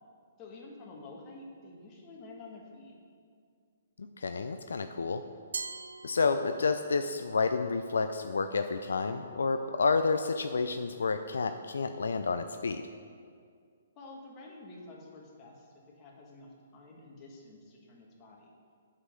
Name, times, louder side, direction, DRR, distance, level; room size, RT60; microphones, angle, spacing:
voice 1, 0.4-2.9 14.0-18.5, left 2 dB, 30° left, -2 dB, 1.8 m, -49 dB
voice 2, 4.2-5.2 6.0-12.8, left 4 dB, 75° left, 8 dB, 0.4 m, -30 dB
Glass, 5.5-7.0, right 4 dB, 75° right, 0.4 m, -41 dB
8.0 x 5.7 x 6.4 m, 2.2 s
hypercardioid pair, 135°, 0 cm